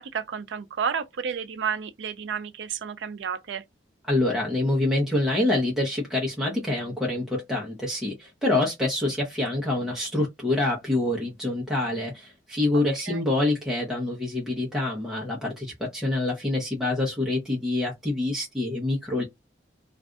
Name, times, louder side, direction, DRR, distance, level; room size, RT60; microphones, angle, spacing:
voice 1, 0.0-3.6 13.1-13.2, right 7 dB, 80° right, 0.4 m, -31 dB
voice 2, 4.1-19.2, left 2 dB, ahead, 0.8 m, -26 dB
2.5 x 2.5 x 3.4 m
head